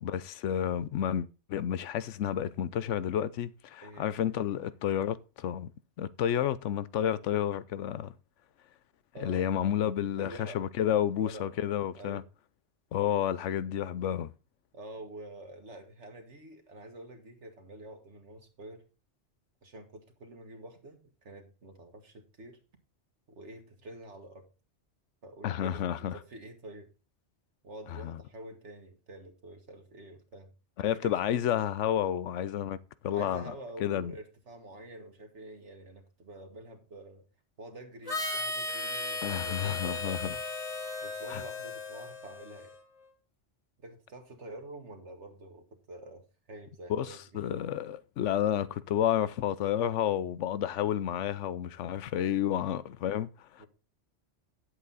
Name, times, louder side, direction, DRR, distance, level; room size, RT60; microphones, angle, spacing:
voice 1, 0.0-5.7 6.0-8.1 9.2-12.2 12.9-14.3 25.4-26.2 27.9-28.2 30.8-32.8 33.0-33.5 33.8-34.1 39.2-40.3 41.3-41.4 46.9-53.6, left 10 dB, 90° left, 1.0 m, -30 dB
voice 2, 9.1-9.5 10.2-10.6 11.2-11.5 11.9-12.3 14.7-18.8 19.6-22.6 23.3-24.5 25.2-26.9 27.6-30.5 30.9-31.7 33.1-37.3 37.6-40.5 41.0-42.8 43.8-47.4 53.6-53.7, right 1 dB, 75° right, 1.7 m, -47 dB
Harmonica, 38.1-42.8, left 2 dB, 35° left, 1.3 m, -36 dB
10.0 x 8.1 x 4.0 m
omnidirectional pair, 1.2 m